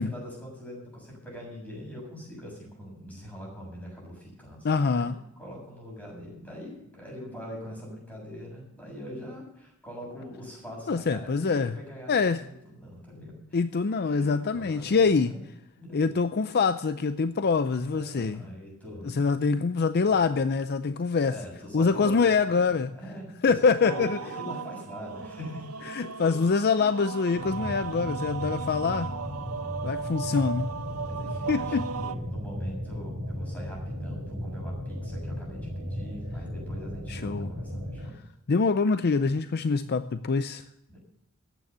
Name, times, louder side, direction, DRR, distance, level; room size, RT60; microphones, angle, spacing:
voice 1, 0.0-13.4 14.1-15.4 15.8-16.1 17.9-19.4 20.1-20.2 21.2-22.6 22.9-23.6 23.8-26.3 26.7-27.0 29.5-29.8 31.0-38.1 40.9-41.0, equal, 5° left, -3 dB, 7.1 m, -42 dB
voice 2, 4.6-5.2 10.9-11.7 12.1-12.4 13.5-15.3 15.9-18.4 19.0-21.4 21.7-22.9 23.4-24.2 25.9-29.1 29.8-30.7 31.5-31.8 37.1-37.5 38.5-40.6, left 4 dB, 45° left, 12 dB, 0.5 m, -25 dB
sound 1, 23.8-32.1, right 6 dB, 80° right, 0.9 m, -36 dB
sound 2, 27.3-38.1, equal, 35° right, 3.1 m, -36 dB
14.0 x 9.2 x 6.8 m, 0.84 s
head